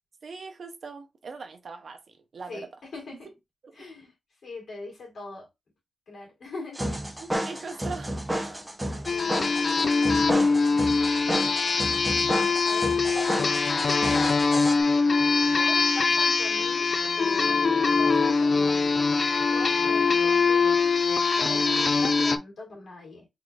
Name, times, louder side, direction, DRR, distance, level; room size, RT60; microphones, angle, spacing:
voice 1, 0.2-2.7 3.6-3.8 7.2-8.6 19.8-20.0, right 4 dB, 60° right, 0.7 m, -41 dB
voice 2, 2.5-3.3 3.8-4.1 4.4-5.5 6.1-6.9 8.9-10.8 12.6-13.2 13.8-14.2 15.6-19.0 19.5-21.0 21.4-23.3, left 2 dB, 70° left, 2.3 m, -42 dB
sound 1, 6.7-14.7, right 1 dB, 10° right, 0.7 m, -32 dB
sound 2, 9.1-22.4, left 4 dB, 40° left, 0.4 m, -23 dB
3.9 x 3.8 x 2.3 m
wide cardioid pair, 175°, 0 cm